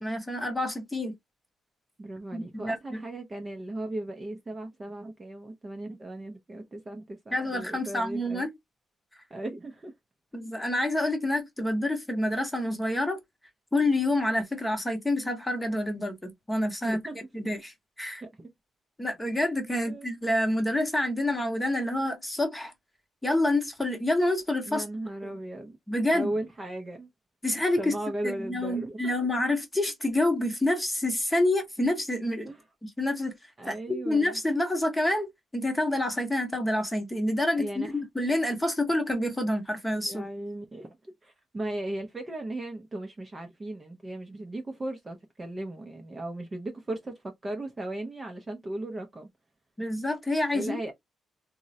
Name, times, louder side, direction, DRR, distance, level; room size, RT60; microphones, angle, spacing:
voice 1, 0.0-1.1 2.3-3.0 7.3-8.5 10.3-13.2 13.7-18.2 19.0-22.7 23.2-24.8 25.2-25.4 25.9-26.3 27.4-28.0 28.2-32.5 32.8-33.4 33.7-35.3 35.5-40.2 49.8-50.9, left 1 dB, 10° left, 0.8 m, -28 dB
voice 2, 2.0-8.5 9.3-9.9 16.8-17.2 18.2-18.5 19.9-20.1 24.7-25.8 26.1-27.1 27.8-29.0 32.5-32.6 33.6-34.4 37.6-37.9 40.1-40.9 41.2-49.3 50.5-50.9, right 1 dB, 20° right, 0.5 m, -37 dB
3.6 x 2.0 x 2.6 m
cardioid pair, 150°, 0 cm